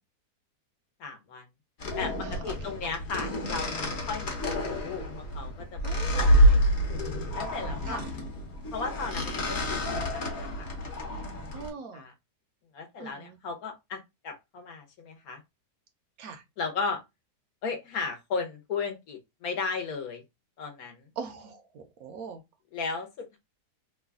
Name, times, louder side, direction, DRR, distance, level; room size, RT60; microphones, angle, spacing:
voice 1, 1.0-1.4 2.0-5.8 6.1-6.6 7.3-8.0 8.7-10.7 11.3-11.6 11.9-12.1 12.7-15.4 16.6-17.0 17.6-20.2 20.6-21.0 22.7-23.4, left 4 dB, 65° left, 1.2 m, -35 dB
sound 1, 1.8-11.7, equal, 45° left, 1.1 m, -27 dB
voice 2, 2.2-2.7 5.8-6.3 7.8-8.1 11.5-12.1 13.0-13.4 16.2-16.4 21.2-22.4, right 5 dB, 70° right, 1.0 m, -41 dB
3.1 x 2.2 x 3.5 m
omnidirectional pair, 1.7 m